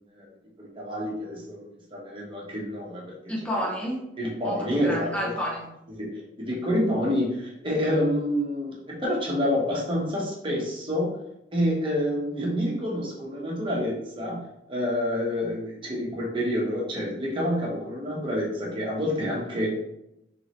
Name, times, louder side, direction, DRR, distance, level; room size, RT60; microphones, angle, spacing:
voice 1, 0.6-3.0 4.2-5.1 6.0-11.1 11.5-19.7, equal, 25° right, -4 dB, 1.2 m, -28 dB
voice 2, 3.3-4.1 4.4-5.7, equal, 5° left, -4 dB, 1.0 m, -30 dB
3.9 x 3.8 x 3.1 m, 0.83 s
head